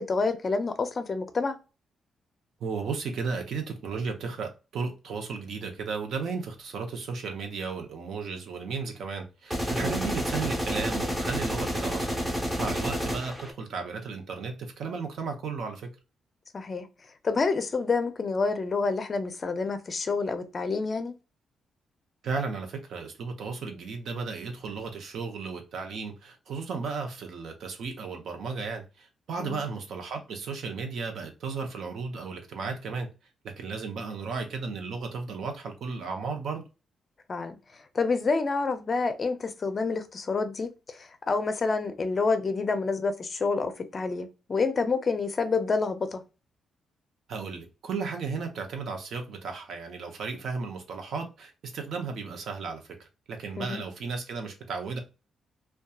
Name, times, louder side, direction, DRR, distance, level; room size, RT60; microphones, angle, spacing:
voice 1, 0.0-1.6 9.7-10.0 16.5-16.9 17.2-21.1 29.4-29.6 37.3-37.6 37.9-46.2 53.6-53.8, left 4 dB, 35° left, 0.5 m, -28 dB
voice 2, 2.6-12.2 12.6-15.9 22.2-33.1 33.6-36.6 47.3-55.0, right 4 dB, 70° right, 0.7 m, -34 dB
sound 1, 9.5-13.5, equal, 10° right, 0.7 m, -30 dB
2.7 x 2.2 x 2.3 m
cardioid pair, 120°, 0 cm